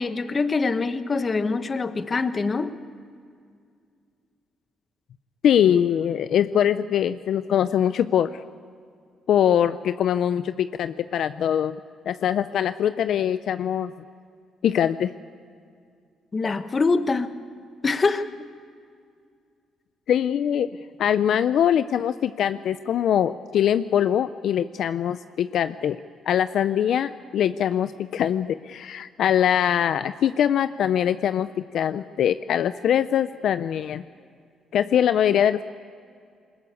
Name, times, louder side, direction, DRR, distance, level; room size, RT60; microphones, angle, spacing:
voice 1, 0.0-2.7 16.3-17.3 17.8-18.2, left 4 dB, 35° left, 10 dB, 1.2 m, -24 dB
voice 2, 5.4-8.4 9.3-11.7 12.1-13.9 14.6-15.1 20.1-20.7 21.0-26.0 26.3-34.0 34.7-35.6, left 9 dB, 70° left, 12 dB, 0.5 m, -22 dB
21.5 x 20.5 x 8.3 m, 2.3 s
cardioid pair, 90°, 0 cm